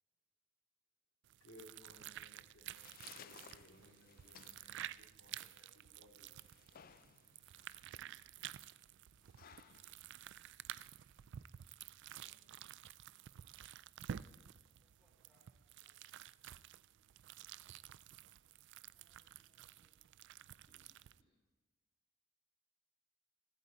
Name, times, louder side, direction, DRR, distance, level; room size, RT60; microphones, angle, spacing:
sound 1, 1.2-21.2, right 11 dB, 55° right, 0.3 m, -52 dB
voice 1, 1.4-6.3 9.5-9.9, left 1 dB, 65° left, 0 dB, 2.4 m, -63 dB
sound 2, 2.4-11.4, left 8 dB, 45° left, 0.5 m, -62 dB
voice 2, 12.2-12.9 18.8-21.4, left 1 dB, 25° left, -5 dB, 2.0 m, -79 dB
voice 3, 14.7-16.4, left 1 dB, 5° right, -2 dB, 4.0 m, -81 dB
23.0 x 8.5 x 4.1 m, 1.3 s
head